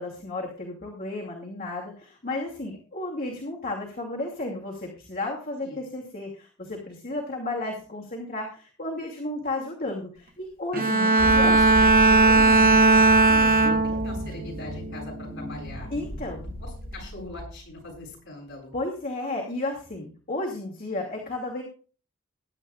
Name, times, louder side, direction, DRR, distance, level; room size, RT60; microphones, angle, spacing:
voice 1, 0.0-11.6 13.6-14.0 15.9-16.4 18.7-21.6, left 2 dB, 40° left, -2 dB, 2.5 m, -33 dB
voice 2, 10.7-15.9 16.4-18.7, left 2 dB, 55° left, -1 dB, 7.9 m, -40 dB
Bowed string instrument, 10.7-14.3 14.8-15.2, right 2 dB, 40° right, 0.8 m, -18 dB
sound 1, 11.2-18.0, equal, 20° left, 3.9 m, -35 dB
20.5 x 11.0 x 2.5 m, 0.40 s
head